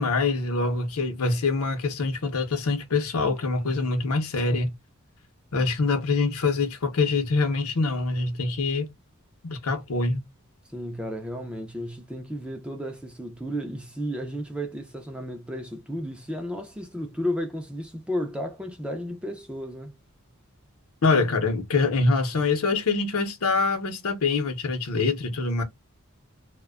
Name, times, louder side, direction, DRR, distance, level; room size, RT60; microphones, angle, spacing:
voice 1, 0.0-4.7 5.5-8.9 9.4-10.2 21.0-25.6, left 3 dB, 80° left, 0.7 m, -25 dB
voice 2, 10.7-19.9, equal, 5° right, 0.3 m, -33 dB
2.5 x 2.1 x 2.3 m
head